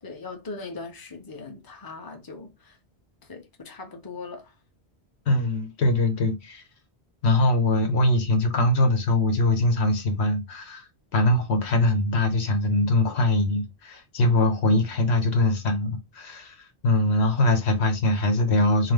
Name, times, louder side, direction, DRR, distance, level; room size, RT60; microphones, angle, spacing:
voice 1, 0.0-2.8 3.2-4.5, left 3 dB, 25° left, 0.8 m, -40 dB
voice 2, 5.3-6.6 7.2-18.9, left 1 dB, 85° left, 1.2 m, -22 dB
4.7 x 2.0 x 3.6 m
omnidirectional pair, 1.1 m